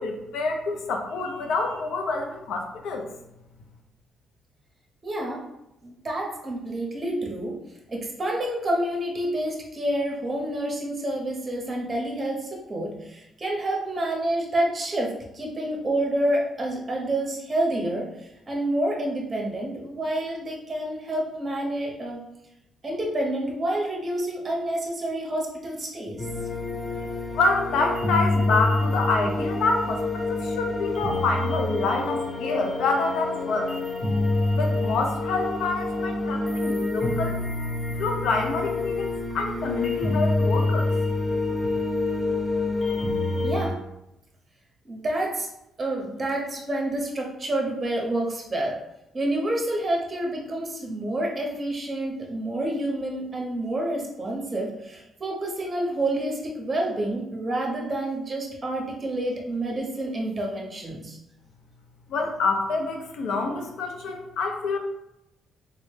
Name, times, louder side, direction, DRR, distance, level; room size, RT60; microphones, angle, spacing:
voice 1, 0.0-3.1 27.3-33.7 34.5-37.4 38.0-40.9 62.1-64.8, left 3 dB, 80° left, 3 dB, 0.6 m, -27 dB
voice 2, 5.0-5.4 5.8-7.6 7.9-22.2 22.8-26.3 43.4-43.8 44.8-45.5 45.8-48.8 49.1-61.2, right 1 dB, 30° right, -1 dB, 0.7 m, -28 dB
sound 1, 26.2-43.7, left 2 dB, 25° left, 0.7 m, -27 dB
3.8 x 2.1 x 3.2 m, 0.88 s
cardioid pair, 90°, 0 cm